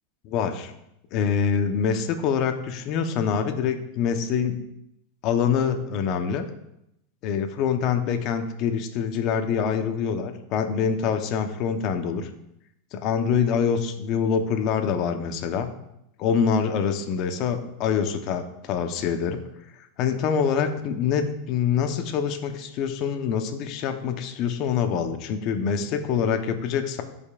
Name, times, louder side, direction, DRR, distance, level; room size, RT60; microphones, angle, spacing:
voice 1, 0.2-0.7 1.1-4.6 5.2-6.5 7.2-12.3 12.9-15.7 16.2-19.4 20.0-27.0, left 7 dB, 50° left, 6 dB, 1.0 m, -25 dB
15.0 x 5.4 x 2.5 m, 0.82 s
supercardioid pair, 120°, 0 cm